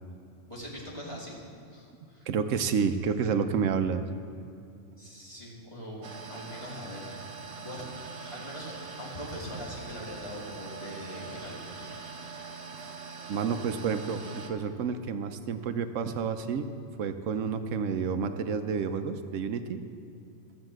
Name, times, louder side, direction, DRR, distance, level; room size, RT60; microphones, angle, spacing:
voice 1, 0.5-2.3 5.0-7.2 7.6-7.9 8.3-12.2, equal, 25° left, -6 dB, 2.5 m, -42 dB
voice 2, 2.3-4.0 12.7-12.9 13.3-16.7 17.0-19.8, right 6 dB, 80° right, 8 dB, 1.0 m, -30 dB
sound 1, 6.0-14.5, right 4 dB, 60° right, 1.2 m, -43 dB
13.5 x 7.2 x 7.7 m, 2.5 s
omnidirectional pair, 1.3 m